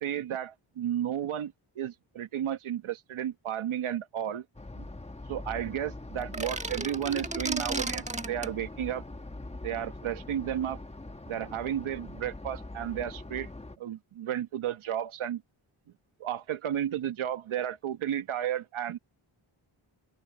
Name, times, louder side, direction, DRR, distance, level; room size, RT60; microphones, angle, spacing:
voice 1, 0.0-4.4 4.8-4.9 5.3-9.0 9.6-10.8 11.3-13.5 13.8-15.4 16.2-19.0, right 10 dB, 75° right, 1.3 m, -33 dB
sound 1, 4.5-13.8, left 2 dB, 15° left, 1.3 m, -43 dB
sound 2, 6.2-8.5, right 2 dB, 15° right, 1.5 m, -34 dB
open air
cardioid pair, 80°, 49 cm